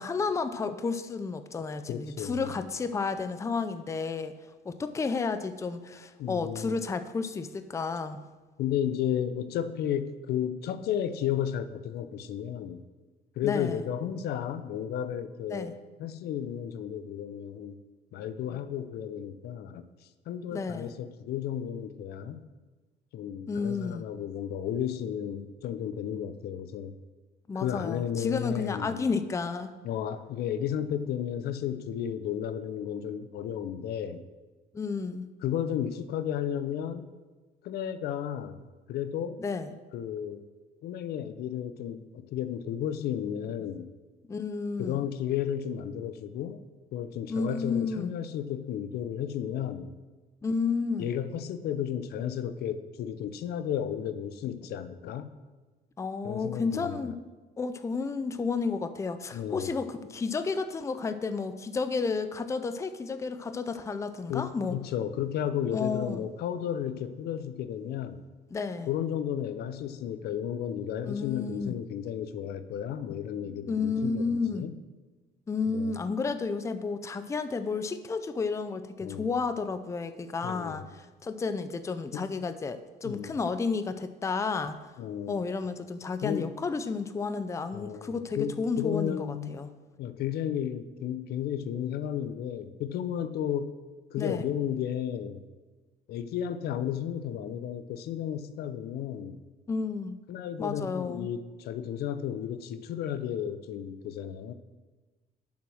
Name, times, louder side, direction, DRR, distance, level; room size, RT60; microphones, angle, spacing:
voice 1, 0.0-4.4 4.7-8.2 13.4-13.8 15.5-15.7 20.5-20.9 23.5-24.0 27.5-29.7 34.7-35.3 39.4-39.7 44.3-45.1 47.3-48.1 50.4-51.1 56.0-57.2 57.6-64.8 65.7-66.2 68.5-68.9 71.0-71.7 73.7-74.7 75.5-84.8 85.3-89.7 94.2-94.4 99.7-100.2 100.6-101.3, left 4 dB, 15° left, 10 dB, 0.5 m, -31 dB
voice 2, 1.9-2.5 6.2-6.8 8.6-12.8 13.4-15.7 16.0-17.8 18.1-19.9 20.3-22.4 23.1-26.9 27.5-29.0 29.8-34.3 35.4-37.0 37.6-39.4 39.9-40.4 40.8-43.9 44.8-46.6 46.9-49.9 51.0-55.3 56.2-57.1 59.3-59.7 64.3-68.2 68.9-74.8 75.7-76.0 79.0-79.3 80.4-80.9 82.1-82.3 83.0-83.3 85.0-85.4 86.2-86.5 87.7-89.6 90.0-93.8 94.1-95.4 96.1-99.4 100.3-104.5, left 9 dB, 70° left, 12 dB, 0.6 m, -33 dB
7.1 x 6.0 x 6.4 m, 1.3 s
cardioid pair, 110°, 17 cm